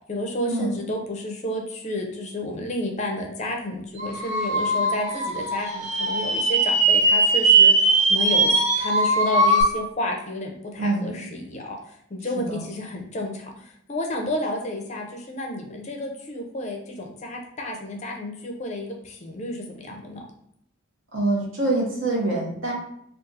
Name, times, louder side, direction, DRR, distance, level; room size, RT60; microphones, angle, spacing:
voice 1, 0.1-20.2, left 1 dB, 35° left, 2 dB, 0.4 m, -31 dB
sound 1, 4.0-9.6, right 3 dB, 35° right, 0.5 m, -20 dB
voice 2, 10.8-11.2 12.4-12.6 21.1-22.7, right 2 dB, 65° right, -2 dB, 1.0 m, -25 dB
2.6 x 2.4 x 3.9 m, 0.73 s
head